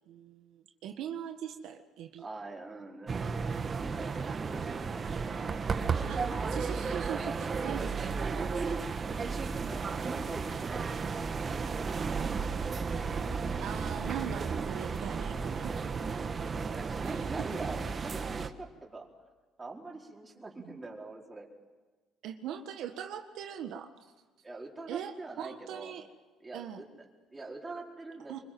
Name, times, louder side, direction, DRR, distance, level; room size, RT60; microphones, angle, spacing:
voice 1, 0.1-2.2 6.1-6.2 6.5-8.1 8.3-8.9 13.6-15.7 16.1-16.2 17.0-17.5 20.6-20.8 22.2-23.9 24.9-26.1 26.5-26.9 28.3-28.4, right 9 dB, 75° right, 5 dB, 1.6 m, -41 dB
voice 2, 2.2-6.0 9.5-12.1 16.7-19.1 19.6-21.5 24.4-25.9 26.4-28.4, right 3 dB, 20° right, -1 dB, 4.8 m, -44 dB
sound 1, 3.1-18.5, right 5 dB, 35° right, 1.6 m, -33 dB
26.0 x 24.5 x 7.8 m, 1.3 s
cardioid pair, 115°, 0 cm